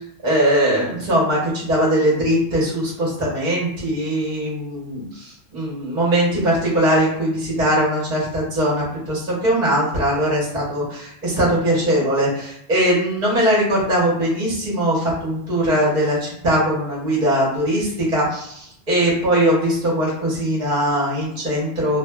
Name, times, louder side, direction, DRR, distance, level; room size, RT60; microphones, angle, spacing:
voice 1, 0.2-22.0, right 1 dB, 45° right, -5 dB, 1.0 m, -20 dB
2.8 x 2.3 x 2.2 m, 0.72 s
omnidirectional pair, 1.1 m